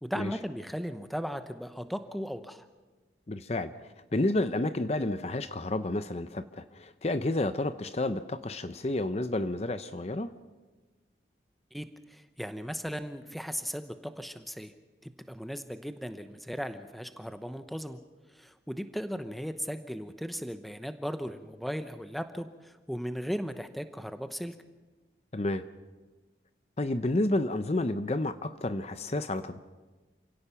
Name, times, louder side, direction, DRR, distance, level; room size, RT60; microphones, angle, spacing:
voice 1, 0.0-2.7 11.7-14.7 15.0-18.0 18.3-24.5, equal, ahead, 9 dB, 0.9 m, -37 dB
voice 2, 3.3-10.3 25.3-25.6 26.8-29.6, left 2 dB, 35° left, 11 dB, 0.7 m, -30 dB
28.5 x 17.0 x 5.8 m, 1.2 s
head